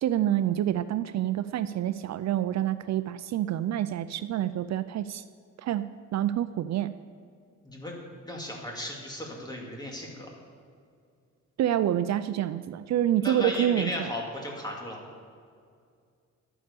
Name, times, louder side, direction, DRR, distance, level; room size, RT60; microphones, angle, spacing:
voice 1, 0.0-5.2 5.6-6.9 11.6-14.1, right 11 dB, 65° right, 13 dB, 0.4 m, -27 dB
voice 2, 7.6-7.9 8.2-10.3 13.2-15.0, left 1 dB, 15° left, -1 dB, 2.3 m, -36 dB
12.0 x 9.8 x 6.8 m, 2.2 s
wide cardioid pair, 145°, 29 cm